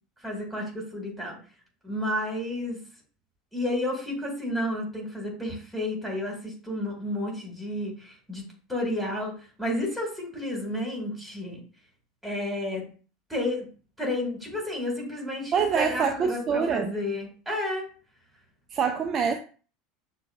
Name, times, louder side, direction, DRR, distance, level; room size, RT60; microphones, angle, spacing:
voice 1, 0.2-1.4 1.8-2.8 3.5-9.3 9.6-11.6 12.2-12.9 13.3-13.7 14.0-17.9, left 1 dB, 5° right, -1 dB, 2.0 m, -31 dB
voice 2, 15.5-16.9 18.7-19.4, right 6 dB, 35° right, 5 dB, 0.4 m, -25 dB
6.7 x 2.3 x 2.4 m, 0.38 s
figure-of-eight pair, 80°, 0 cm